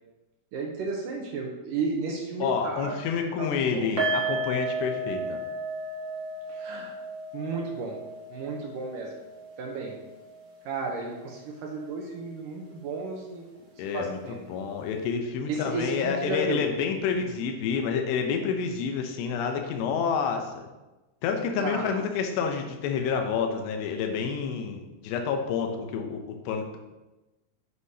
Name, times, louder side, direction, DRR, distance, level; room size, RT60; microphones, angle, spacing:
voice 1, 0.5-3.0 3.4-3.9 6.5-7.0 7.3-8.0 8.3-9.1 9.6-10.0 10.7-13.4 13.9-14.4 15.5-16.6 21.6-22.0, right 4 dB, 75° right, 0 dB, 2.1 m, -33 dB
voice 2, 2.4-5.4 13.8-20.7 21.2-26.8, left 6 dB, 85° left, 4 dB, 3.0 m, -29 dB
sound 1, 4.0-11.2 11.4-11.6 12.0-12.1, right 2 dB, 55° right, 1.3 m, -34 dB
9.9 x 8.2 x 2.8 m, 1.1 s
omnidirectional pair, 4.8 m